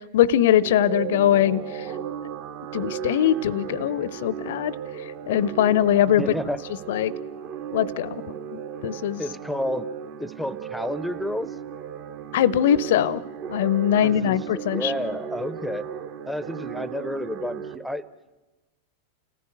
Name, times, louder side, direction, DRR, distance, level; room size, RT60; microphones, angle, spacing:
voice 1, 0.1-1.9 2.7-4.7 5.3-6.3 6.9-7.1 7.7-8.2 8.5-9.2 12.3-13.2 13.5-14.9, left 10 dB, 55° left, 22 dB, 0.7 m, -21 dB
sound 1, 0.6-17.8, right 8 dB, 45° right, 1.9 m, -35 dB
voice 2, 6.2-6.6 9.2-9.9 10.2-11.5 13.9-15.9 16.3-18.0, left 1 dB, ahead, 18 dB, 0.8 m, -30 dB
29.0 x 15.0 x 7.9 m, 1.1 s
figure-of-eight pair, 90°, 0 cm